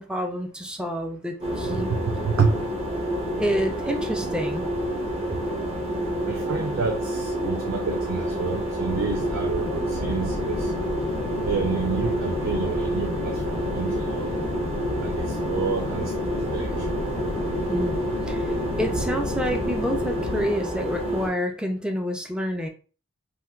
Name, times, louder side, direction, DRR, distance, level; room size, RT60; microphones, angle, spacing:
voice 1, 0.0-1.9 3.4-4.7 17.7-18.0 18.3-22.7, equal, 5° right, 4 dB, 0.4 m, -28 dB
sound 1, 1.4-21.3, equal, 30° right, 0.7 m, -28 dB
voice 2, 1.6-2.7 6.3-10.7 11.4-14.4 15.0-16.9, right 5 dB, 70° right, 2 dB, 0.4 m, -29 dB
sound 2, 8.9-20.5, left 3 dB, 65° left, 0.4 m, -33 dB
3.2 x 2.2 x 2.3 m, 0.37 s
head